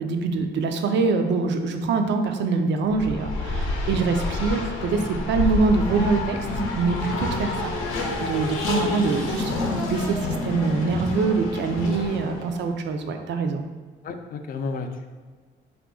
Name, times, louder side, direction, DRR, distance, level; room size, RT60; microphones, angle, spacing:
voice 1, 0.0-6.4 6.8-7.7 8.2-9.6 9.8-13.6, right 4 dB, 65° right, 5 dB, 0.4 m, -24 dB
Race car auto racing, 2.9-12.5, left 2 dB, 90° left, 0.6 m, -28 dB
voice 2, 14.0-15.1, left 4 dB, 45° left, 6 dB, 0.4 m, -32 dB
3.1 x 2.4 x 3.6 m, 1.4 s
cardioid pair, 90°, 20 cm